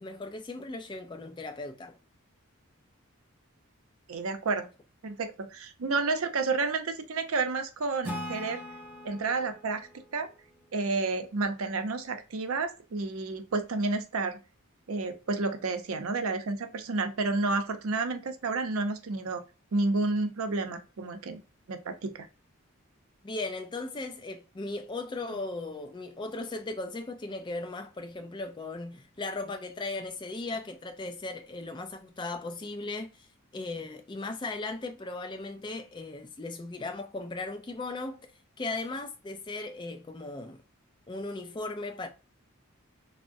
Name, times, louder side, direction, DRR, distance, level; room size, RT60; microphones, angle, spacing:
voice 1, 0.0-2.0 23.2-33.3 33.5-38.2 38.6-40.6 41.1-42.1, left 2 dB, 20° left, 0.3 m, -37 dB
voice 2, 4.1-4.7 5.0-8.6 9.0-9.8 10.1-10.3 10.7-14.4 14.9-19.4 19.7-21.4 21.7-22.3, right 3 dB, 75° right, 0.5 m, -30 dB
Acoustic guitar / Strum, 8.0-11.5, equal, 10° right, 0.7 m, -42 dB
3.5 x 2.0 x 2.5 m
head